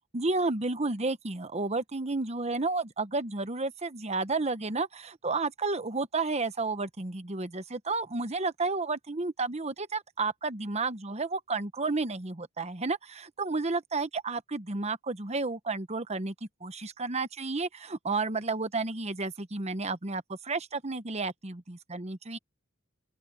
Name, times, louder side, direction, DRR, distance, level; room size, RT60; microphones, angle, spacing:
voice 1, 0.1-16.3 16.6-22.4, right 3 dB, 30° right, 1.0 m, -31 dB
open air
head